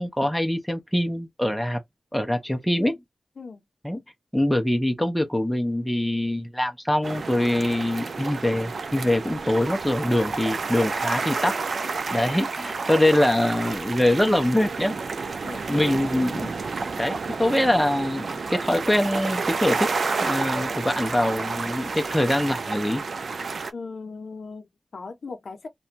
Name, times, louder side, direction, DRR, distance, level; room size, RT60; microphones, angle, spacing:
voice 1, 0.0-1.8 2.1-3.0 3.8-4.0 4.3-11.6 12.1-14.9 15.7-16.5 17.0-19.9 20.2-23.0, left 1 dB, 5° left, 0.6 m, -24 dB
sound 1, 7.0-23.7, right 4 dB, 70° right, 0.4 m, -30 dB
voice 2, 15.4-15.9 23.7-25.7, left 4 dB, 75° left, 0.6 m, -38 dB
2.5 x 2.2 x 2.8 m
wide cardioid pair, 85°, 0 cm